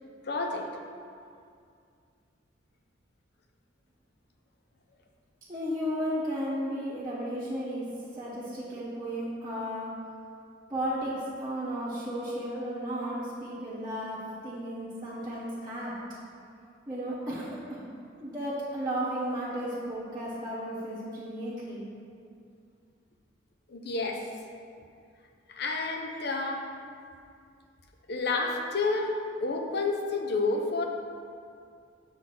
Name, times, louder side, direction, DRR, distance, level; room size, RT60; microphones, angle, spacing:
voice 1, 0.2-0.7 23.7-24.3 25.5-26.7 28.1-30.8, left 3 dB, 55° left, 2 dB, 0.7 m, -30 dB
voice 2, 5.5-7.9 8.1-9.9 10.7-16.0 16.9-17.8 18.2-21.8, equal, 15° right, -12 dB, 1.1 m, -34 dB
6.9 x 4.1 x 6.0 m, 2.4 s
head